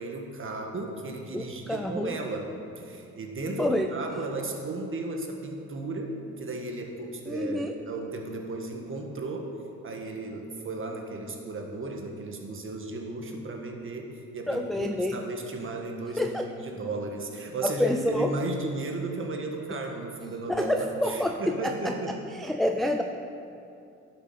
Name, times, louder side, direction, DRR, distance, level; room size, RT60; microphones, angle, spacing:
voice 1, 0.0-2.5 2.8-9.5 9.8-14.1 14.3-22.2, right 2 dB, 45° right, 2 dB, 1.6 m, -35 dB
voice 2, 1.3-2.2 3.6-3.9 7.3-7.7 14.5-15.2 16.2-16.5 17.6-18.3 20.5-21.9 22.3-23.0, left 1 dB, ahead, 3 dB, 0.5 m, -28 dB
11.5 x 7.3 x 5.8 m, 2.6 s
cardioid pair, 90°, 30 cm